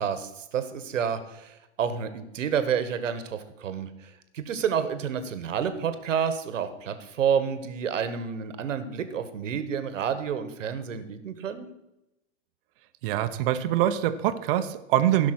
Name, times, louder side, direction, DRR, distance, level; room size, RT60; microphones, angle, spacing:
voice 1, 0.0-11.7, right 7 dB, 80° right, 11 dB, 1.6 m, -29 dB
voice 2, 13.0-15.3, right 12 dB, 45° right, 10 dB, 1.1 m, -24 dB
16.0 x 6.0 x 6.1 m, 0.91 s
hypercardioid pair, 135°, 37 cm